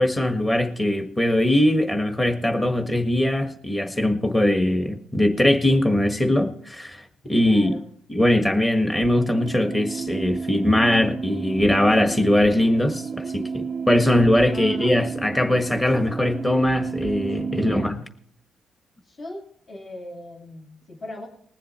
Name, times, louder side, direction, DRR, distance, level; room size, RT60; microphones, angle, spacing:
voice 1, 0.0-7.8 8.1-18.0, left 1 dB, 15° left, 5 dB, 1.6 m, -21 dB
voice 2, 7.4-7.8 14.5-15.1 17.4-17.9 19.0-21.3, left 1 dB, 45° left, -2 dB, 2.7 m, -39 dB
sound 1, 8.9-17.9, right 5 dB, 45° right, 0.5 m, -32 dB
20.5 x 7.5 x 4.4 m, 0.65 s
cardioid pair, 90°, 0 cm